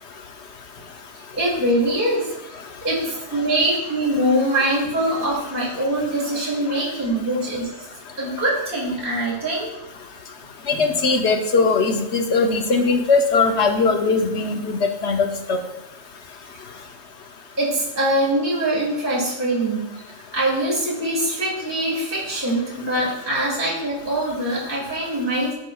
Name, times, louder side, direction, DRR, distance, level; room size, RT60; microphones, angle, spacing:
voice 1, 1.3-2.3 2.8-7.7 8.2-9.7 17.6-19.8 20.3-25.5, right 1 dB, 10° right, -6 dB, 2.1 m, -23 dB
voice 2, 10.7-15.6, left 4 dB, 60° left, 5 dB, 0.8 m, -20 dB
13.5 x 4.9 x 2.3 m, 0.89 s
omnidirectional pair, 1.7 m